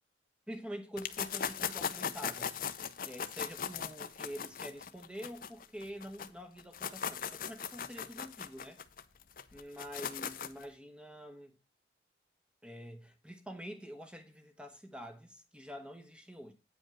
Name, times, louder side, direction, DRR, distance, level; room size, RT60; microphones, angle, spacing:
voice 1, 0.5-2.5 3.1-8.8 9.5-11.5 12.6-16.5, equal, 5° right, 1.1 m, -46 dB
sound 1, 1.0-6.3 6.6-10.6, left 7 dB, 50° left, 0.6 m, -39 dB
9.0 x 5.3 x 5.9 m
head